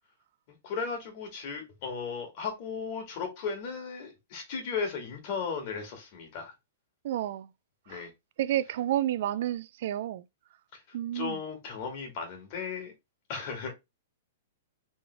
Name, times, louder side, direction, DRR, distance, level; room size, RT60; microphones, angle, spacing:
voice 1, 0.6-6.5 7.9-8.1 10.7-10.8 11.1-12.9 13.3-13.7, left 5 dB, 50° left, 2.0 m, -36 dB
voice 2, 7.0-7.5 7.9-8.0 8.4-10.2 10.9-11.4, right 12 dB, 60° right, 0.3 m, -30 dB
3.8 x 3.3 x 3.3 m
hypercardioid pair, 130°, 0 cm